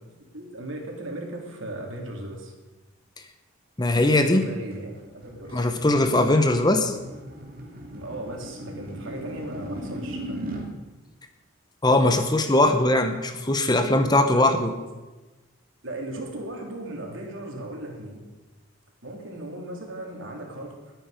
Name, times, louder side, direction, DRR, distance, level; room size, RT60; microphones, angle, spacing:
voice 1, 0.0-2.5 4.2-5.0 5.2-5.7 7.9-10.7 14.3-14.8 15.8-18.2 19.0-20.9, right 1 dB, 70° right, 0 dB, 3.5 m, -37 dB
voice 2, 3.8-4.5 5.5-7.0 11.8-14.7, left 2 dB, 20° left, 7 dB, 0.9 m, -20 dB
sound 1, 4.7-10.7, right 1 dB, 45° right, 2.5 m, -38 dB
20.5 x 9.3 x 5.2 m, 1.2 s
head